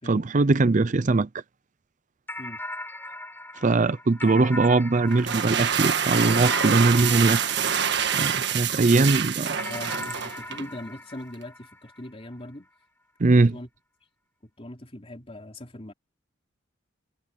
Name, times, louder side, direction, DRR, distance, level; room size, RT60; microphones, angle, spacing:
voice 1, 0.1-1.3 3.6-7.6 8.1-9.6 13.2-13.6, right 3 dB, 40° right, 0.5 m, -21 dB
sound 1, 2.3-8.9 9.6-12.3, left 1 dB, 10° left, 6.9 m, -39 dB
sound 2, 5.1-10.7, right 8 dB, 60° right, 1.6 m, -26 dB
voice 2, 9.6-12.7 13.5-13.7 14.4-15.9, left 1 dB, 30° left, 3.6 m, -40 dB
head